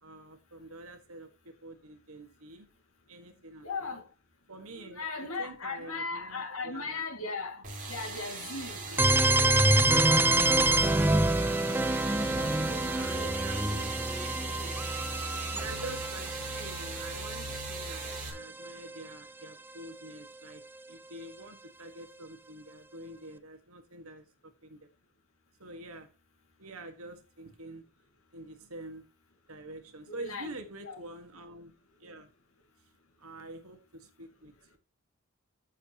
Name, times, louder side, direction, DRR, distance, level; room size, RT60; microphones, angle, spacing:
voice 1, 0.0-2.7 3.1-4.0 4.5-7.0 8.9-9.2 12.9-13.9 15.5-20.6 20.9-24.9 25.6-26.1 26.6-27.8 28.3-29.1 29.5-32.3 32.8-32.9 33.2-34.8, right 2 dB, 80° right, 1.6 m, -46 dB
voice 2, 3.6-4.0 4.6-8.8 9.1-10.3 10.5-11.1 12.3-12.8 13.1-13.5 14.6-14.7 30.1-30.5 30.8-31.0, left 3 dB, 75° left, 2.2 m, -39 dB
sound 1, 7.6-18.3, right 3 dB, 40° right, 3.9 m, -39 dB
sound 2, 9.0-18.7, right 2 dB, 10° right, 0.5 m, -27 dB
14.5 x 6.9 x 2.9 m
head